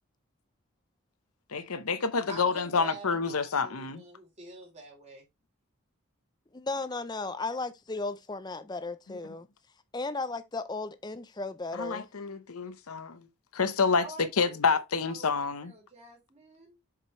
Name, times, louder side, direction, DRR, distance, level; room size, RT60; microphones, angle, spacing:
voice 1, 1.5-4.0 11.7-13.3 13.5-14.1 14.4-15.7, left 5 dB, 80° left, 0.8 m, -28 dB
voice 2, 2.3-5.2 13.9-15.3 15.6-16.8, right 2 dB, 30° right, 3.1 m, -47 dB
voice 3, 6.5-9.5 9.9-12.1, left 3 dB, 20° left, 0.5 m, -35 dB
7.3 x 5.1 x 3.1 m
head